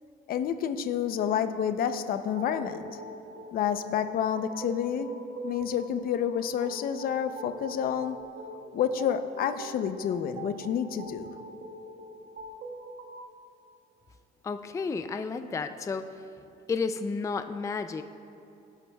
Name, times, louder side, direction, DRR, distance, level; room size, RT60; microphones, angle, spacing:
voice 1, 0.3-2.9 3.5-5.1 5.4-8.2 8.7-11.3, left 8 dB, 60° left, 10 dB, 0.7 m, -29 dB
sound 1, 2.2-13.2, right 1 dB, 75° right, 1.6 m, -43 dB
voice 2, 14.4-16.0 16.7-18.0, left 4 dB, 20° left, 9 dB, 0.4 m, -31 dB
17.0 x 11.5 x 2.3 m, 2.9 s
cardioid pair, 110°, 17 cm